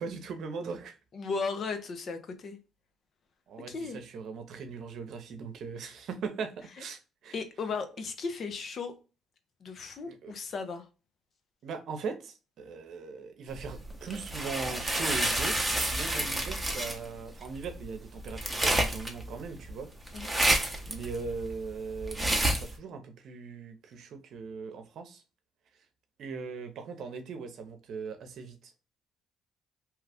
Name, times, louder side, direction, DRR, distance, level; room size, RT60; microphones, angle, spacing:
voice 1, 0.0-1.0 3.5-7.3 10.0-10.3 11.6-15.6 15.9-19.9 20.9-25.2 26.2-28.7, right 5 dB, 70° right, 0.7 m, -39 dB
voice 2, 1.1-2.6 3.7-4.0 7.3-8.9 9.6-10.9 20.1-20.3, left 4 dB, 55° left, 0.7 m, -36 dB
sound 1, 13.6-22.8, right 1 dB, 10° right, 0.8 m, -30 dB
3.0 x 2.4 x 3.4 m
cardioid pair, 80°, 0 cm